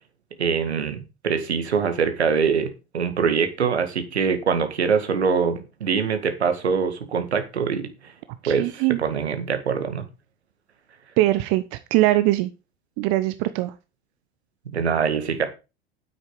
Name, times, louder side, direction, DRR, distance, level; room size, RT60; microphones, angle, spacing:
voice 1, 0.4-2.7 2.9-8.1 8.5-10.1 14.7-15.4, right 6 dB, 85° right, 8 dB, 2.0 m, -23 dB
voice 2, 8.4-9.0 11.2-12.5 13.0-13.7, right 17 dB, 55° right, 12 dB, 0.9 m, -21 dB
9.6 x 8.2 x 5.0 m, 0.29 s
hypercardioid pair, 75°, 32 cm